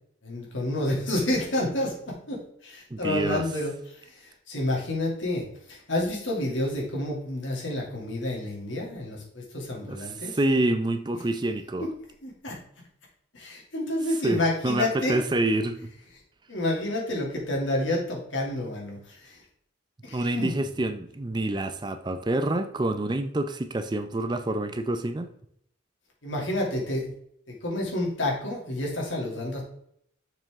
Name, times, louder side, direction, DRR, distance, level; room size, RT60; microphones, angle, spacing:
voice 1, 0.2-10.4 11.8-11.9 12.2-12.6 13.3-15.2 16.5-19.4 20.0-20.5 26.2-27.1 27.5-29.6, left 1 dB, 75° left, -2 dB, 2.6 m, -29 dB
voice 2, 2.9-3.5 9.9-11.9 14.2-15.8 20.1-25.3, right 1 dB, 20° right, 9 dB, 0.4 m, -27 dB
6.8 x 6.0 x 3.6 m, 0.70 s
head